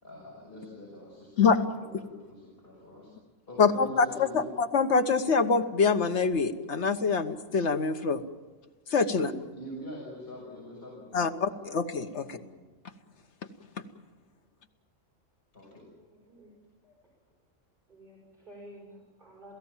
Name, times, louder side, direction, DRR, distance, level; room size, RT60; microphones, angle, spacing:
voice 1, 0.0-3.1 3.5-4.5 9.1-11.6 12.2-12.6 15.5-15.9, left 1 dB, 45° left, -5 dB, 6.4 m, -44 dB
voice 2, 1.4-1.7 3.6-8.2 8.9-9.3 11.1-12.4, left 5 dB, 65° left, 6 dB, 1.5 m, -25 dB
voice 3, 16.1-16.5 16.8-17.0 17.9-19.5, right 1 dB, 40° right, -4 dB, 6.0 m, -51 dB
28.0 x 17.0 x 7.4 m, 1.2 s
omnidirectional pair, 1.3 m